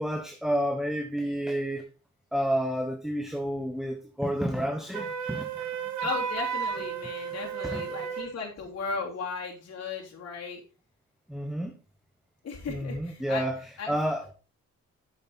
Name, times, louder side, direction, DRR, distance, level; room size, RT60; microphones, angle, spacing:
voice 1, 0.0-1.8 2.3-5.7 7.6-7.8 11.3-11.7 12.7-13.6 13.9-14.3, equal, ahead, 3 dB, 1.3 m, -30 dB
Wind instrument woodwind instrument, 4.9-8.3, right 7 dB, 70° right, 1.6 m, -33 dB
voice 2, 6.0-10.6 12.4-13.9, left 4 dB, 55° left, -2 dB, 3.3 m, -36 dB
7.7 x 7.2 x 4.1 m, 0.34 s
cardioid pair, 90°, 30 cm